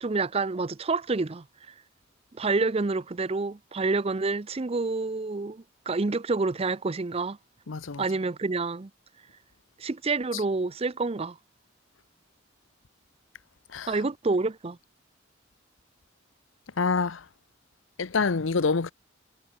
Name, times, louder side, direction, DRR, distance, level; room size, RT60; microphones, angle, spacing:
voice 1, 0.0-1.4 2.4-7.4 8.0-8.9 9.8-11.4 13.9-14.8, right 3 dB, 30° right, 0.5 m, -28 dB
voice 2, 7.7-8.0 10.3-10.4 13.7-14.0 16.8-17.2 18.0-18.9, left 4 dB, 80° left, 0.8 m, -26 dB
head